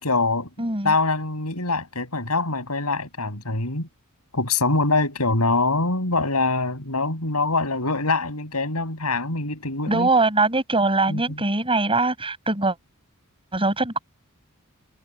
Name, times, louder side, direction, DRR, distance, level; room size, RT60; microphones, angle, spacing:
voice 1, 0.0-0.5 0.8-3.9 4.3-10.1 11.1-11.4, left 3 dB, 85° left, 6.8 m, -24 dB
voice 2, 0.6-0.9 9.9-12.8 13.5-14.0, right 3 dB, 25° right, 7.1 m, -22 dB
head